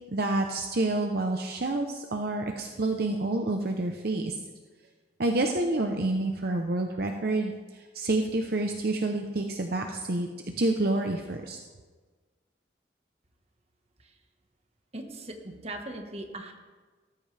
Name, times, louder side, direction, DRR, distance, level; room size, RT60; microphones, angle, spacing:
voice 1, 0.1-4.4 5.2-10.3 10.6-11.6, right 2 dB, 55° right, 3 dB, 0.8 m, -28 dB
voice 2, 14.9-16.5, right 1 dB, 35° right, 4 dB, 1.4 m, -39 dB
18.0 x 14.0 x 3.4 m, 1.4 s
head